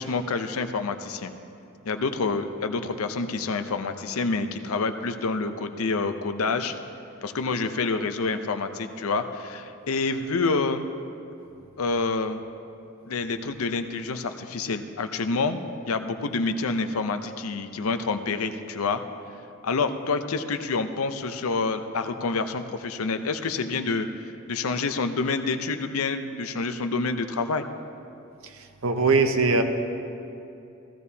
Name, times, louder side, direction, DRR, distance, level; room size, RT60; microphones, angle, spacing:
voice 1, 0.0-1.3 1.9-6.7 7.2-10.9 11.8-12.4 13.1-19.0 19.6-24.1 24.5-27.6, left 4 dB, 80° left, 8 dB, 0.6 m, -27 dB
voice 2, 28.4-29.6, right 3 dB, 70° right, 6 dB, 0.8 m, -22 dB
15.5 x 14.0 x 2.8 m, 2.7 s
head